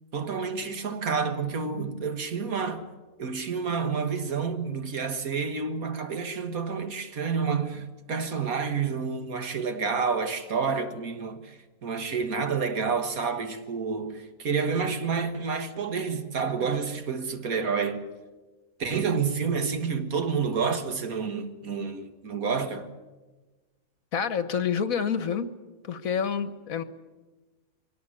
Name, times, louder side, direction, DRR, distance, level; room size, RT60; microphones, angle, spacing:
voice 1, 0.1-2.9 3.2-18.0 18.8-22.9, right 5 dB, 70° right, 2.0 m, -29 dB
voice 2, 24.1-25.5 25.8-26.8, left 7 dB, 70° left, 1.6 m, -28 dB
23.5 x 18.0 x 9.8 m
omnidirectional pair, 1.5 m